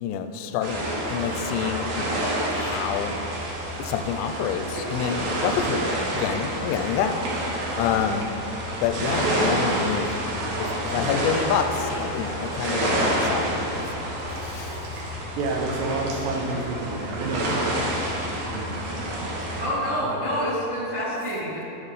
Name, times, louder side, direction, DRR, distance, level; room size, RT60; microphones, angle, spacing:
voice 1, 0.0-3.2 3.8-7.3 7.8-8.4 8.8-10.1 10.6-13.5 14.4-14.8, left 8 dB, 85° left, 8 dB, 2.7 m, -28 dB
sound 1, 0.6-19.6, right 1 dB, 65° right, 2.0 m, -28 dB
voice 2, 15.4-18.2 18.5-19.2, right 3 dB, 85° right, 2 dB, 3.0 m, -30 dB
voice 3, 19.6-21.6, equal, 45° right, -10 dB, 1.0 m, -27 dB
12.5 x 5.6 x 4.0 m, 2.9 s
omnidirectional pair, 4.9 m